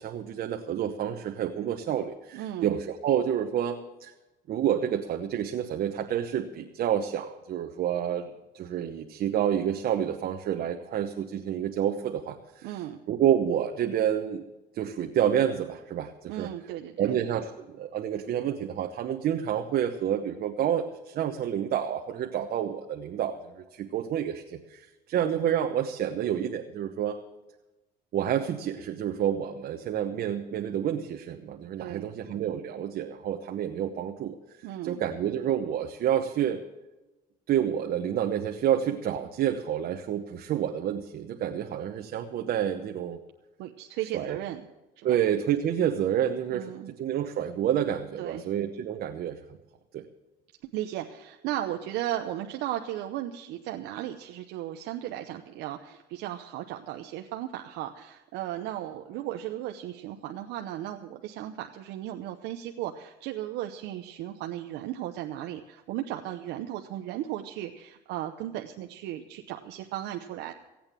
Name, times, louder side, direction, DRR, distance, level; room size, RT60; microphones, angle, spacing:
voice 1, 0.0-4.1 4.5-12.7 13.1-14.5 14.7-16.5 17.0-23.4 23.7-27.2 28.1-34.4 34.8-36.6 37.5-43.2 44.1-44.4 45.0-46.7 47.0-49.4 49.9-50.0, right 9 dB, 60° right, 4 dB, 1.0 m, -29 dB
voice 2, 2.3-2.7 12.6-13.0 16.3-17.2 31.8-32.1 34.6-35.0 43.6-44.6 45.0-45.2 46.5-46.9 48.2-48.4 50.7-70.5, right 12 dB, 90° right, 4 dB, 0.8 m, -36 dB
16.5 x 8.8 x 7.4 m, 1.1 s
cardioid pair, 110°, 17 cm